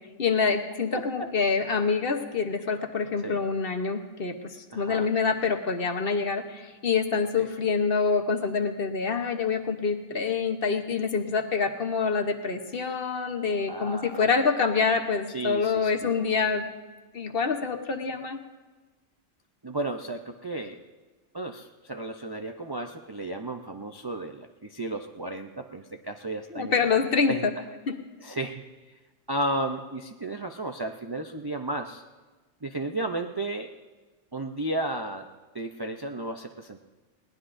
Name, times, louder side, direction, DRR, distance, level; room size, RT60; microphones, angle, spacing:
voice 1, 0.2-16.6 17.1-18.4 26.5-27.5 27.9-28.0, left 5 dB, 50° left, 5 dB, 1.1 m, -26 dB
voice 2, 0.9-1.3 3.2-3.4 4.7-5.1 7.4-7.5 13.7-14.2 15.3-16.1 19.6-20.8 21.3-26.9 27.3-27.5 28.2-28.6 29.3-32.0 32.6-33.7 34.3-35.3 35.5-36.9, right 2 dB, 35° right, 3 dB, 0.4 m, -33 dB
21.0 x 18.0 x 2.6 m, 1.3 s
omnidirectional pair, 1.3 m